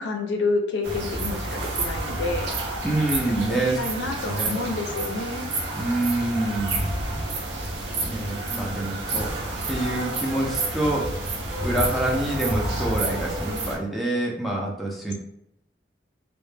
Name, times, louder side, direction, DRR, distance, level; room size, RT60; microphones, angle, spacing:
voice 1, 0.0-2.5 3.7-5.5, left 3 dB, 75° left, 4 dB, 0.4 m, -28 dB
sound 1, 0.8-13.8, right 2 dB, 70° right, 0.5 m, -29 dB
voice 2, 2.8-3.8 4.2-4.6 5.8-6.8 8.0-9.3 9.7-11.1 11.6-15.1, right 1 dB, ahead, -3 dB, 0.3 m, -26 dB
2.1 x 2.0 x 3.1 m, 0.77 s
head